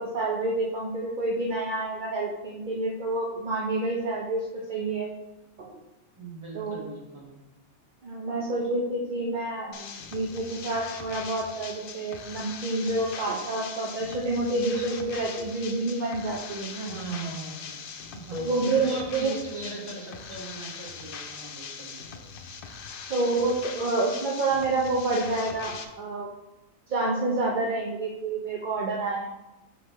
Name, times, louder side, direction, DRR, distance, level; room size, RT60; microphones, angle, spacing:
voice 1, 0.0-5.1 6.5-6.9 8.0-16.8 18.3-19.3 23.1-26.3 26.9-29.2, right 2 dB, 40° right, -2 dB, 0.8 m, -28 dB
voice 2, 6.2-7.3 16.7-17.8 18.1-22.2, right 3 dB, 20° right, -3 dB, 1.5 m, -39 dB
sound 1, 9.7-25.8, left 6 dB, 55° left, 0.6 m, -41 dB
10.0 x 3.8 x 3.1 m, 0.99 s
omnidirectional pair, 1.5 m